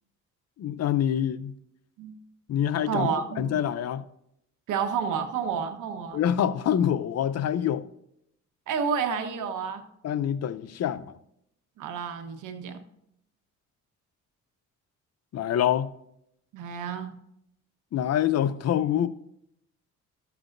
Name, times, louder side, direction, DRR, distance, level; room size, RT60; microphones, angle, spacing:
voice 1, 0.6-1.5 2.5-3.1 3.4-4.0 6.1-7.9 10.0-11.2 15.3-15.9 17.9-19.1, left 10 dB, 55° left, 0.6 m, -26 dB
voice 2, 2.8-3.5 4.7-6.2 8.7-9.8 11.8-12.8 16.5-17.1, right 6 dB, 85° right, 1.2 m, -30 dB
13.0 x 7.0 x 2.6 m
cardioid pair, 90°, 30 cm